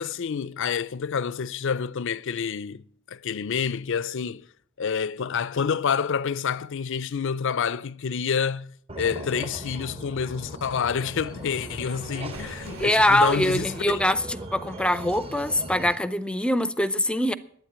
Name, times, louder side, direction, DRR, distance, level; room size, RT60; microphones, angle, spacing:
voice 1, 0.0-4.5 4.8-14.0, left 6 dB, 60° left, 0.5 m, -28 dB
sound 1, 8.9-16.0, right 1 dB, 30° right, 0.9 m, -39 dB
Waves surf, 11.1-14.4, right 3 dB, 90° right, 2.4 m, -45 dB
voice 2, 12.8-17.3, left 1 dB, 5° left, 0.5 m, -23 dB
11.5 x 9.3 x 8.7 m
head